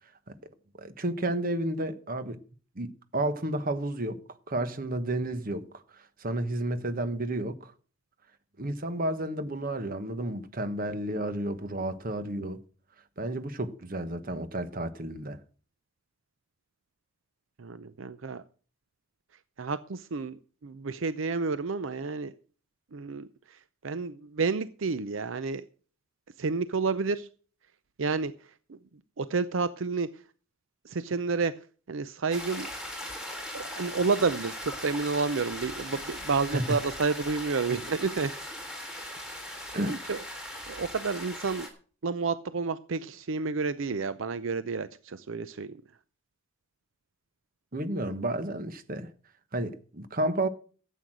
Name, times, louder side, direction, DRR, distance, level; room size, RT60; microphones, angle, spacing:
voice 1, 0.8-2.4 2.7-4.2 4.5-7.7 8.6-12.6 13.2-15.4 36.5-36.8 39.7-40.0 47.7-49.1 49.5-50.5, right 1 dB, 45° right, 1.2 m, -31 dB
voice 2, 17.6-18.4 19.6-20.4 20.6-22.3 22.9-23.3 23.8-25.6 26.4-27.3 28.0-28.3 29.2-30.1 30.9-31.5 31.9-32.7 33.5-38.3 39.8-40.2 40.7-41.7 42.0-45.7, right 4 dB, 75° right, 0.6 m, -30 dB
sound 1, 32.3-41.7, left 1 dB, 5° right, 3.3 m, -39 dB
13.0 x 8.3 x 6.2 m
head